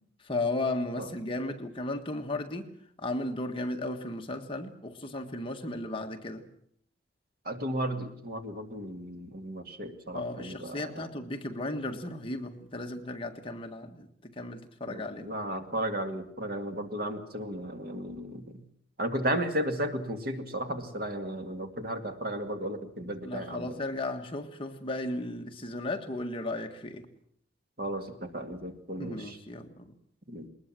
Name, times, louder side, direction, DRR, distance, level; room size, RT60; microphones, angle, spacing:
voice 1, 0.2-2.7 3.0-6.5 10.1-15.3 23.2-27.1 29.0-29.9, left 2 dB, 25° left, 1.6 m, -35 dB
voice 2, 7.5-11.1 14.9-18.6 19.0-23.8 27.8-29.4 30.3-30.5, right 1 dB, 50° right, 2.3 m, -34 dB
21.0 x 20.0 x 7.7 m
head